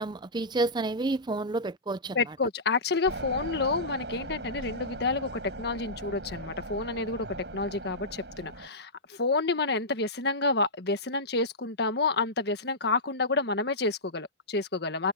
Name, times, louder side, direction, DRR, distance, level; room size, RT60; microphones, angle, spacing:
voice 1, 0.0-2.2, right 2 dB, 25° right, 0.5 m, -30 dB
voice 2, 2.2-7.3 7.5-15.1, left 3 dB, 65° left, 1.6 m, -29 dB
sound 1, 3.1-8.7, right 2 dB, 75° right, 5.2 m, -39 dB
head